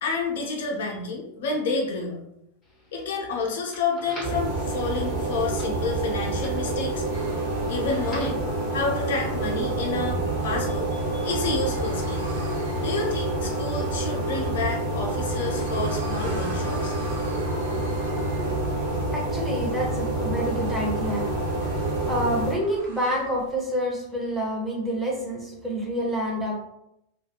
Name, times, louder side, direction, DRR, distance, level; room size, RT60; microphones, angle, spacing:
voice 1, 0.0-2.2 2.9-7.0 7.7-8.4 8.7-12.3 12.8-17.0, left 3 dB, 55° left, 0 dB, 0.5 m, -29 dB
sound 1, 2.6-8.5, left 1 dB, 25° left, 0.8 m, -46 dB
sound 2, 4.2-22.5, right 2 dB, 40° right, 0.9 m, -28 dB
sound 3, 7.1-23.4, right 1 dB, 60° right, 0.6 m, -43 dB
voice 2, 19.1-21.3 21.6-21.8 22.1-26.6, equal, 5° right, -3 dB, 0.7 m, -28 dB
2.3 x 2.1 x 2.7 m, 0.80 s
figure-of-eight pair, 90°, 0 cm